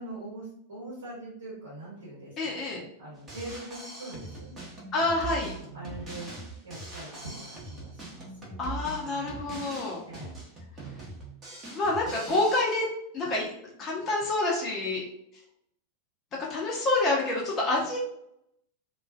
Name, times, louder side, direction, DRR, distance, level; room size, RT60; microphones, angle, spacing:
voice 1, 0.0-4.7 5.7-6.3 6.6-8.3 10.1-10.4, right 2 dB, 65° right, -7 dB, 1.2 m, -42 dB
voice 2, 2.4-2.8 4.9-5.5 8.6-10.0 11.7-12.9 13.1-13.5 13.8-15.0 16.4-18.0, left 2 dB, 30° left, -3 dB, 0.6 m, -27 dB
Drum kit, 3.2-12.6, right 2 dB, 25° right, 0.8 m, -42 dB
2.4 x 2.3 x 2.3 m, 0.73 s
figure-of-eight pair, 90°, 0 cm